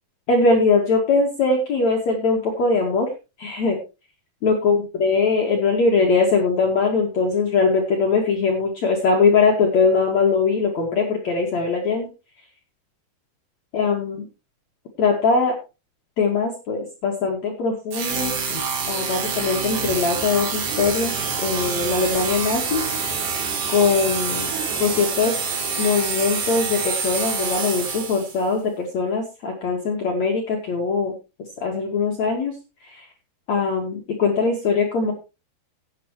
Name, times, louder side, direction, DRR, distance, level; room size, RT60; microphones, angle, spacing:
voice 1, 0.3-3.1 3.4-3.8 4.4-12.1 13.7-14.3 15.0-15.6 16.2-23.3 23.7-24.5 24.8-25.4 25.8-31.1 31.6-32.5 32.8-33.1 33.5-35.1, left 4 dB, 50° left, -1 dB, 2.6 m, -21 dB
sound 1, 17.9-28.5, right 5 dB, 75° right, 4.9 m, -27 dB
sound 2, 19.8-26.9, right 4 dB, 50° right, 4.4 m, -37 dB
17.5 x 8.8 x 3.1 m, 0.29 s
omnidirectional pair, 5.0 m